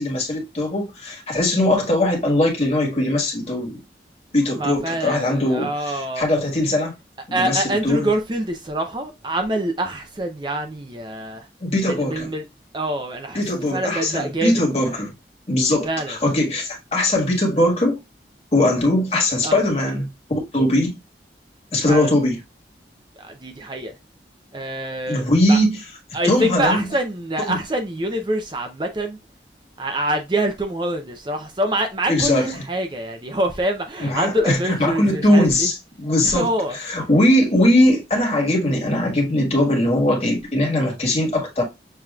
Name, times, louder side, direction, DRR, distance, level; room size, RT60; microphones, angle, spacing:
voice 1, 0.0-3.8 4.3-6.9 7.3-8.1 11.6-12.3 13.3-15.1 15.5-18.0 18.5-21.0 21.7-22.4 25.1-25.8 26.2-26.9 27.4-27.6 32.1-32.6 34.0-41.6, left 1 dB, 35° left, 1.6 m, -20 dB
voice 2, 4.6-6.3 7.3-11.5 11.9-12.4 12.7-14.5 15.8-16.1 19.4-19.6 21.9-22.1 23.2-23.9 24.5-25.6 26.1-29.2 29.8-35.7 36.3-36.8, right 1 dB, 25° right, 0.6 m, -25 dB
6.8 x 2.9 x 2.3 m
head